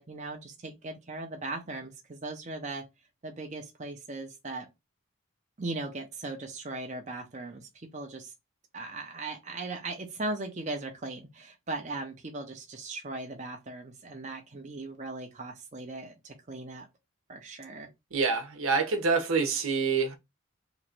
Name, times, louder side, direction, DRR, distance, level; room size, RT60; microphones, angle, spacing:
voice 1, 0.0-2.8 3.2-4.7 5.6-8.3 8.7-16.9 17.3-17.9, right 2 dB, 35° right, 0.6 m, -38 dB
voice 2, 18.1-20.2, right 4 dB, 80° right, 0.9 m, -26 dB
3.0 x 2.5 x 4.3 m
head